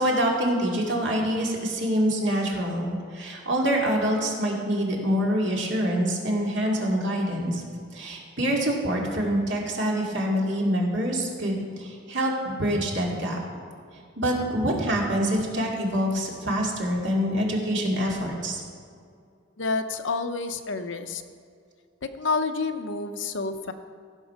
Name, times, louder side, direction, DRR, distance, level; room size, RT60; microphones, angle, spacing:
voice 1, 0.0-7.6 7.9-13.4 14.2-18.6, equal, 70° right, -2 dB, 2.4 m, -25 dB
voice 2, 19.6-21.2 22.2-23.7, left 4 dB, 75° left, 8 dB, 0.8 m, -29 dB
15.5 x 6.7 x 5.7 m, 2.3 s
head